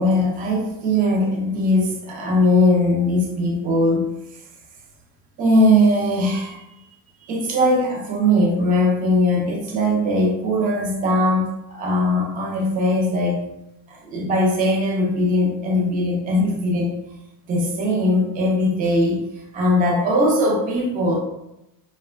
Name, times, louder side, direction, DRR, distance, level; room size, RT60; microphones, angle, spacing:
voice 1, 0.0-4.1 5.4-6.6 7.3-13.4 13.9-17.0 17.5-19.2 19.5-21.2, left 1 dB, 20° right, -1 dB, 0.3 m, -20 dB
2.9 x 2.1 x 2.2 m, 0.88 s
supercardioid pair, 125°, 47 cm